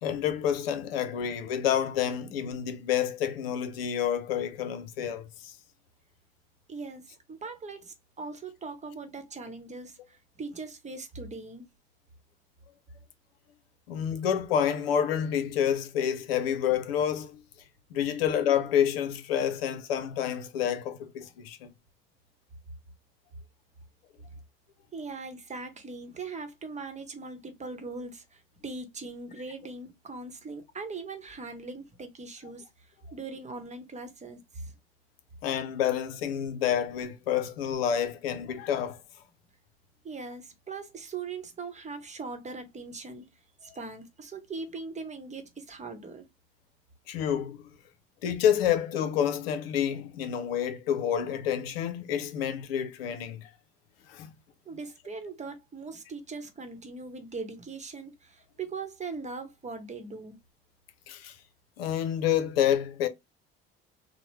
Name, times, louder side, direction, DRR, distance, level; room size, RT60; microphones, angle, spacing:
voice 1, 0.0-5.5 13.9-17.4 17.9-21.7 35.4-39.0 47.1-47.6 48.2-53.5 54.1-54.3 61.1-61.4 61.8-63.1, left 9 dB, 85° left, 0.6 m, -28 dB
voice 2, 6.7-11.6 24.9-34.7 40.0-43.3 43.6-46.3 54.7-60.4, right 4 dB, 25° right, 0.9 m, -40 dB
2.9 x 2.1 x 3.1 m
hypercardioid pair, 70°, 29 cm